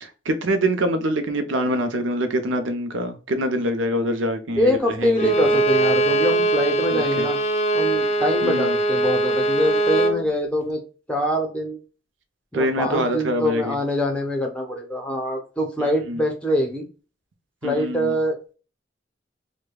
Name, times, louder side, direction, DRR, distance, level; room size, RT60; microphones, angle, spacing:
voice 1, 0.0-5.3 6.9-7.3 8.4-8.8 12.5-13.8 15.8-16.2 17.6-18.2, equal, 85° right, 7 dB, 0.7 m, -25 dB
voice 2, 4.6-7.4 7.7-10.8 11.1-11.8 12.5-16.8 17.6-18.5, equal, 5° left, 1 dB, 0.8 m, -24 dB
Bowed string instrument, 5.2-10.2, right 2 dB, 35° left, 0.4 m, -21 dB
4.9 x 2.2 x 2.3 m, 0.35 s
head